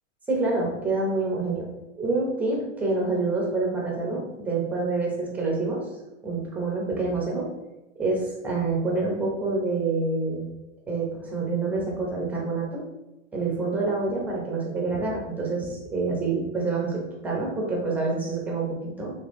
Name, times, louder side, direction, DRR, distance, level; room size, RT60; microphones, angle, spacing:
voice 1, 0.3-1.7 2.0-5.8 6.2-7.5 8.0-10.5 10.9-12.8 13.3-19.1, right 3 dB, 5° right, -3 dB, 0.4 m, -27 dB
5.3 x 3.2 x 2.5 m, 0.99 s
supercardioid pair, 150°, 39 cm